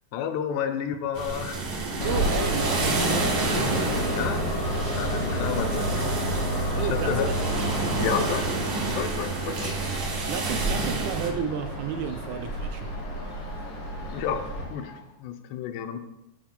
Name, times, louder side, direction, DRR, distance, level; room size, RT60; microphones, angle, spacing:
voice 1, 0.1-1.6 4.1-4.5 5.0-5.9 6.8-7.3 8.0-8.5 8.9-9.7 14.1-16.0, left 8 dB, 90° left, 7 dB, 2.8 m, -31 dB
sound 1, 1.1-11.3, right 3 dB, 55° right, 2.3 m, -30 dB
Train, 2.0-14.6, equal, 40° left, 3.7 m, -30 dB
voice 2, 2.0-3.4 5.6-5.9 6.8-7.4 8.2-8.4 9.5-9.6 10.3-12.9, right 7 dB, 80° right, 6 dB, 2.3 m, -32 dB
sound 2, 2.3-15.2, left 2 dB, 65° left, 1.7 m, -44 dB
10.0 x 9.5 x 2.2 m, 0.91 s
omnidirectional pair, 4.7 m